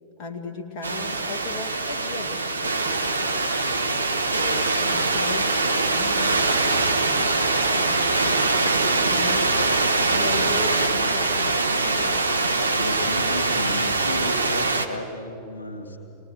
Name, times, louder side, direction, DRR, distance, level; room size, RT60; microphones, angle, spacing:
voice 1, 0.2-3.4 4.3-12.4, left 3 dB, 40° left, 2 dB, 2.3 m, -37 dB
sound 1, 0.8-14.9, right 3 dB, 80° right, 1.3 m, -23 dB
voice 2, 12.7-16.0, left 1 dB, 80° left, 2 dB, 2.6 m, -33 dB
24.5 x 19.5 x 8.1 m, 3.0 s
figure-of-eight pair, 90°, 0 cm